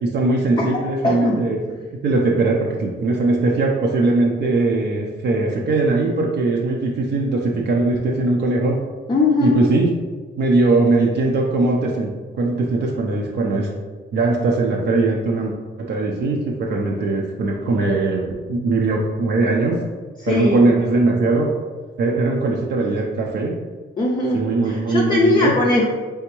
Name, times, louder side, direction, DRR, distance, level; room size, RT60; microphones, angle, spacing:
voice 1, 0.0-1.6 2.0-8.8 9.4-9.9 10.4-12.1 12.4-13.7 14.1-15.6 15.9-19.8 20.3-21.5 22.0-23.5 24.3-25.5, right 3 dB, 60° right, -1 dB, 0.5 m, -20 dB
voice 2, 0.6-1.4 9.1-9.6 20.2-20.6 24.0-25.9, left 2 dB, 25° left, -4 dB, 0.4 m, -20 dB
3.9 x 3.4 x 3.0 m, 1.4 s
wide cardioid pair, 160°, 20 cm